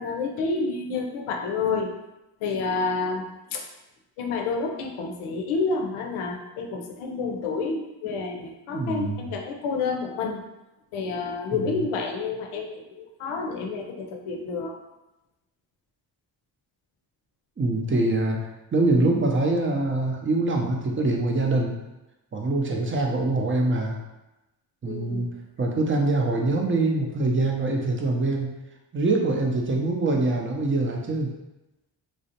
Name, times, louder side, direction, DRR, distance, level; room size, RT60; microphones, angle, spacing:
voice 1, 0.0-1.9 2.4-3.6 4.2-10.4 10.9-14.8 24.9-25.3, left 4 dB, 80° left, 3 dB, 0.6 m, -29 dB
voice 2, 8.7-9.3 11.5-11.8 17.6-21.8 22.3-24.0 24.8-25.3 25.6-28.6 28.9-31.3, right 2 dB, 25° right, 1 dB, 0.5 m, -24 dB
2.4 x 2.1 x 2.7 m, 0.97 s
supercardioid pair, 45°, 49 cm